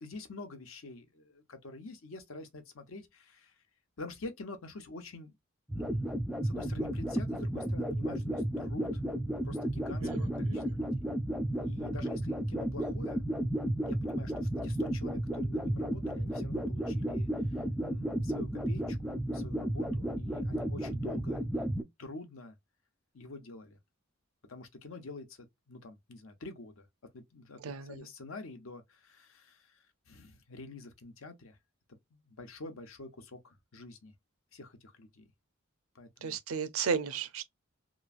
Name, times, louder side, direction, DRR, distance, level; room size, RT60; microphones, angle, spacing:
voice 1, 0.0-3.5 4.0-5.3 5.7-6.1 6.4-9.0 9.4-11.1 11.6-13.2 13.9-21.7 22.0-22.6 23.1-23.8 24.5-26.9 27.1-31.6 31.9-34.1 34.5-35.3 35.9-36.4, left 2 dB, 75° left, 0.8 m, -47 dB
sound 1, 5.7-21.8, right 1 dB, ahead, 0.3 m, -33 dB
voice 2, 10.0-10.7 27.6-28.1 36.2-37.4, right 6 dB, 85° right, 0.5 m, -35 dB
3.0 x 2.4 x 2.4 m
head